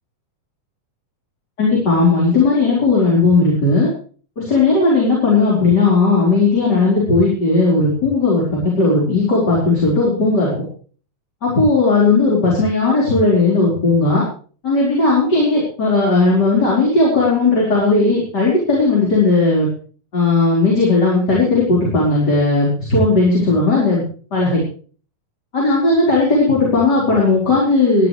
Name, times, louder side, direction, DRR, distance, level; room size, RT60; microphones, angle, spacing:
voice 1, 1.6-3.9 4.4-10.6 11.4-14.2 14.6-19.7 20.1-24.0 24.3-24.6 25.5-28.1, left 3 dB, 30° left, -5 dB, 5.1 m, -16 dB
19.0 x 13.5 x 3.3 m, 0.42 s
omnidirectional pair, 3.7 m